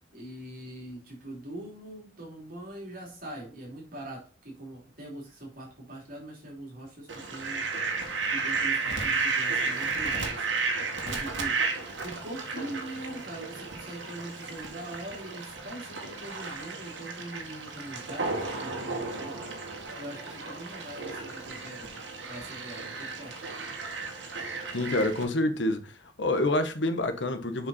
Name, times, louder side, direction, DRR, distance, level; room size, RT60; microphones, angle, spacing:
voice 1, 0.1-7.6 8.3-10.5 11.0-11.6 12.0-19.4 20.0-21.9 22.3-23.4, right 1 dB, 50° right, 3.3 m, -42 dB
Fowl, 7.1-25.2, right 4 dB, 75° right, 2.0 m, -33 dB
voice 2, 24.7-25.9 26.2-27.7, left 1 dB, 70° left, 1.1 m, -27 dB
7.2 x 5.7 x 4.2 m
head